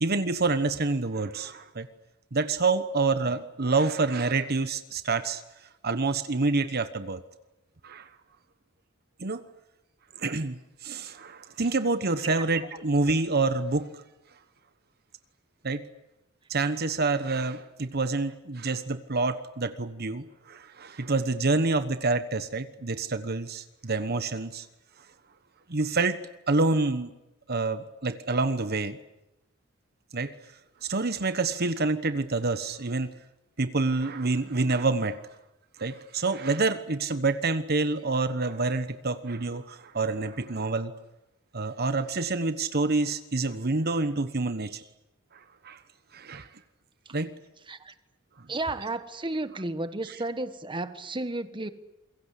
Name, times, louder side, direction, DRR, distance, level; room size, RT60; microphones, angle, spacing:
voice 1, 0.0-1.9 2.3-5.4 5.8-7.2 7.8-8.1 9.2-9.4 10.2-13.9 15.6-15.8 16.5-24.7 25.7-26.2 26.5-27.1 27.5-29.0 30.1-30.3 30.8-33.1 33.6-35.2 35.8-40.9 41.5-44.8 45.6-45.8 46.1-46.5 47.1-47.3 50.0-50.2, right 3 dB, 50° right, 11 dB, 1.1 m, -27 dB
voice 2, 48.5-51.7, right 2 dB, 25° right, 11 dB, 1.4 m, -33 dB
28.5 x 22.5 x 8.3 m, 0.91 s
head